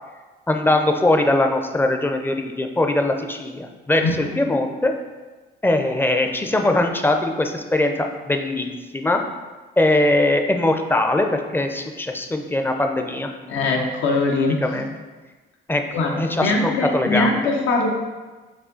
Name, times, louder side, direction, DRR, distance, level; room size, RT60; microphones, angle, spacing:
voice 1, 0.5-4.0 4.4-4.9 5.6-9.2 9.8-13.3 14.6-14.9 15.7-15.8 16.2-17.3, left 2 dB, 10° left, 4 dB, 0.4 m, -21 dB
voice 2, 13.5-14.8 15.9-17.9, left 3 dB, 80° left, 1 dB, 0.7 m, -22 dB
4.9 x 2.7 x 3.8 m, 1.3 s
cardioid pair, 90°, 20 cm